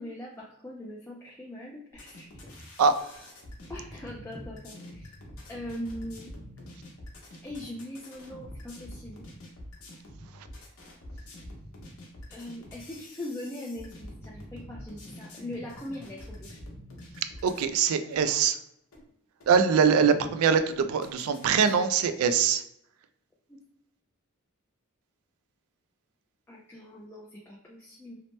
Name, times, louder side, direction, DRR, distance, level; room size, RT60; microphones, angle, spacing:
voice 1, 0.0-2.3 3.7-5.1 5.5-6.3 7.4-9.2 12.3-16.6 23.5-23.6 26.5-28.2, left 1 dB, 10° left, -3 dB, 0.3 m, -41 dB
sound 1, 1.9-17.7 18.1-18.2 18.9-19.0 19.4-20.3 20.7-21.7, left 1 dB, 85° left, 0.9 m, -46 dB
voice 2, 17.4-18.6 19.5-22.6, right 6 dB, 85° right, 11 dB, 0.3 m, -23 dB
2.9 x 2.0 x 3.1 m, 0.76 s
head